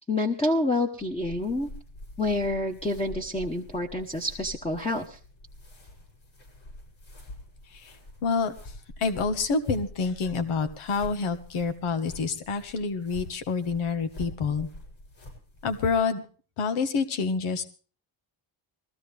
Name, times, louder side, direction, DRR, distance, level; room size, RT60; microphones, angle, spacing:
voice 1, 0.1-1.7 2.2-5.2, left 2 dB, 10° left, 1 dB, 1.1 m, -28 dB
sound 1, 1.0-16.0, left 1 dB, 60° left, 7.6 m, -46 dB
voice 2, 8.2-8.7 9.0-14.7 15.6-16.2 16.6-17.6, left 4 dB, 85° left, 10 dB, 1.6 m, -27 dB
21.0 x 15.5 x 3.4 m, 0.39 s
wide cardioid pair, 155°, 49 cm